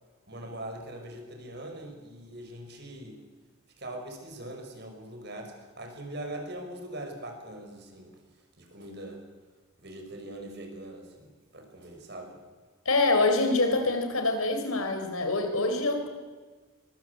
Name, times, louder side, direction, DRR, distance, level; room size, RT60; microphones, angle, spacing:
voice 1, 0.3-3.2 3.8-8.2 8.6-9.2 9.8-12.4, right 1 dB, 50° right, 3 dB, 5.7 m, -42 dB
voice 2, 12.8-16.1, left 2 dB, 85° left, 7 dB, 4.5 m, -25 dB
23.5 x 22.5 x 8.2 m, 1.4 s
head